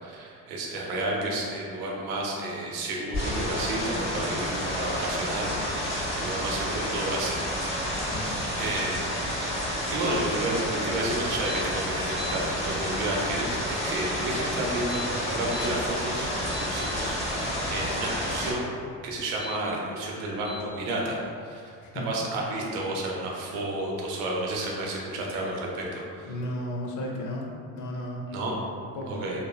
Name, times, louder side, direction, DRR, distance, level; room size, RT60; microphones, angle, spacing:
voice 1, 0.0-7.4 8.6-9.0 9.4-9.5 9.9-18.7 19.0-21.6 22.0-26.3 28.3-28.5 29.1-29.4, right 1 dB, 85° right, -2 dB, 0.6 m, -31 dB
sound 1, 3.1-18.5, equal, 35° left, 1.2 m, -30 dB
sound 2, 12.2-12.4 14.7-15.7 16.2-16.9 19.3-19.6 20.4-20.6, left 4 dB, 15° left, 1.5 m, -39 dB
voice 2, 21.8-22.1 26.3-27.5 27.7-29.2, left 1 dB, 55° left, -1 dB, 0.6 m, -34 dB
3.1 x 2.1 x 2.2 m, 2.3 s
supercardioid pair, 80°, 36 cm